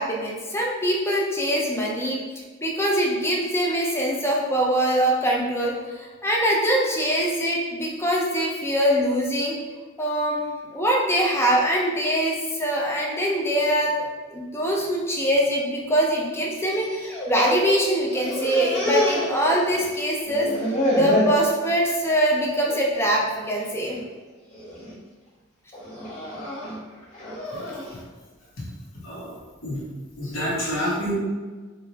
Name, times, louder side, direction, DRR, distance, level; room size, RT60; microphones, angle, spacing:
voice 1, 0.0-2.2 2.6-9.5 10.0-13.9 14.3-20.5 20.9-24.0, equal, 15° left, -2 dB, 0.6 m, -23 dB
sound 1, 16.7-17.8 18.1-20.0 20.3-21.4 21.9-22.2 22.6-22.8 23.6-24.0 24.5-24.9 25.7-27.9, equal, 35° left, 1.3 m, -28 dB
voice 2, 29.0-29.3 29.6-29.8 30.2-31.1, equal, 80° left, -5 dB, 1.3 m, -28 dB
3.8 x 3.2 x 2.9 m, 1.4 s
head